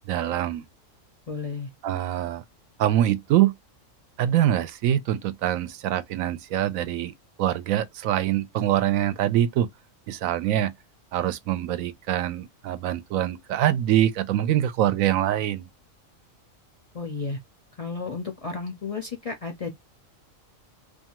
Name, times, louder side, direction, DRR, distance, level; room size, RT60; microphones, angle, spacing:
voice 1, 0.1-0.6 1.8-2.4 2.8-3.5 4.2-7.1 7.4-9.7 10.1-10.7 11.1-15.7, right 12 dB, 85° right, 1.0 m, -24 dB
voice 2, 1.3-1.7 16.9-17.4 17.8-19.7, left 4 dB, 50° left, 0.4 m, -32 dB
2.6 x 2.3 x 2.8 m
omnidirectional pair, 1.4 m